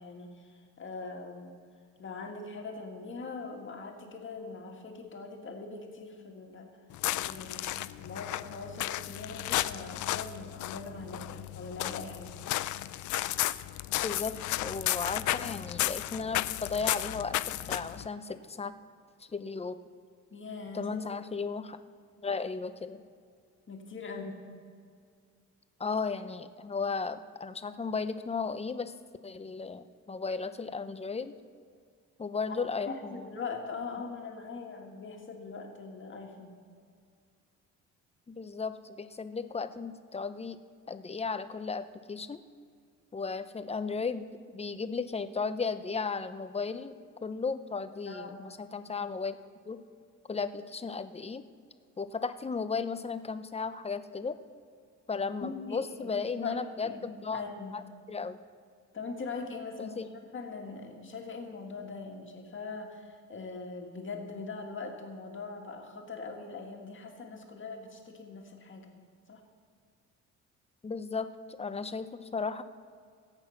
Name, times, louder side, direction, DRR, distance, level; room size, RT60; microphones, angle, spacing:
voice 1, 0.0-1.6 2.0-6.7 7.2-12.3 20.3-21.0 23.7-24.4 32.9-36.6 48.1-48.5 55.4-57.0 57.3-57.8 58.9-60.0 60.3-68.9 69.3-69.4, left 4 dB, 40° left, 2 dB, 2.0 m, -41 dB
sound 1, 6.9-18.1, left 15 dB, 75° left, 0.5 m, -33 dB
voice 2, 14.0-17.4 17.7-18.7 19.3-19.7 20.7-21.8 22.2-23.0 25.8-28.9 29.2-31.3 32.2-33.1 38.3-40.6 40.9-42.4 43.1-44.2 44.5-47.0 47.2-48.3 48.7-49.4 49.7-49.8 50.3-51.4 52.0-54.4 55.1-57.4 58.1-58.4 59.8-60.1 70.8-72.6, left 4 dB, 20° left, 11 dB, 0.7 m, -35 dB
17.5 x 8.1 x 5.8 m, 2.2 s
cardioid pair, 90°, 30 cm